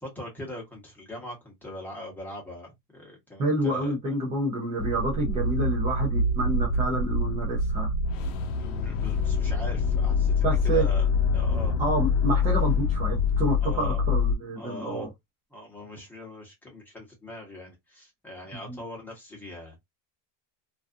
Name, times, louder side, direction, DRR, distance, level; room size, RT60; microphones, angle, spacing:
voice 1, 0.0-3.9 8.4-11.8 13.6-14.0 14.6-15.1 15.5-19.8, left 1 dB, 5° left, 0.8 m, -41 dB
voice 2, 3.4-7.9 10.4-10.9 11.8-15.1 18.7-18.8, right 1 dB, 15° right, 0.3 m, -28 dB
sound 1, 4.8-14.4, left 4 dB, 75° left, 0.5 m, -25 dB
2.4 x 2.3 x 2.5 m
supercardioid pair, 160°, 39 cm